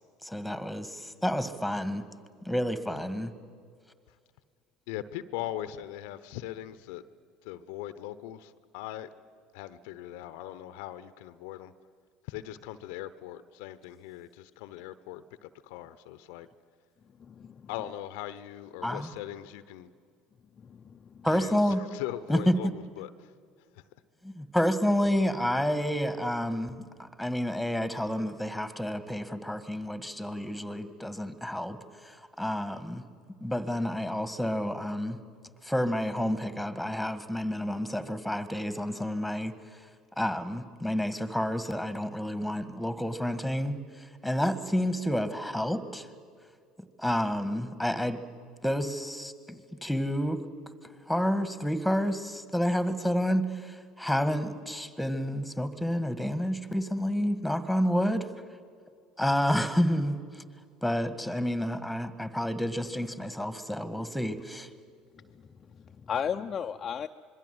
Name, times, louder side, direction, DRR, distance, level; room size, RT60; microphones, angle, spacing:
voice 1, 0.2-2.0 2.5-3.3 18.8-19.1 21.2-21.8 22.3-22.5 24.2-33.0 33.4-35.2 35.6-39.9 40.2-46.1 47.0-48.2 48.6-50.4 50.8-58.3 59.2-60.4 60.8-64.7, equal, ahead, 13 dB, 1.9 m, -29 dB
voice 2, 4.9-7.0 7.4-9.1 9.5-11.7 12.2-16.5 17.7-19.9 21.2-23.3 23.7-23.8, left 13 dB, 70° left, 14 dB, 0.9 m, -40 dB
voice 3, 17.2-17.7 20.6-21.3 65.1-67.1, left 7 dB, 40° left, 5 dB, 0.7 m, -36 dB
26.0 x 22.0 x 7.9 m, 2.1 s
hypercardioid pair, 70°, 0 cm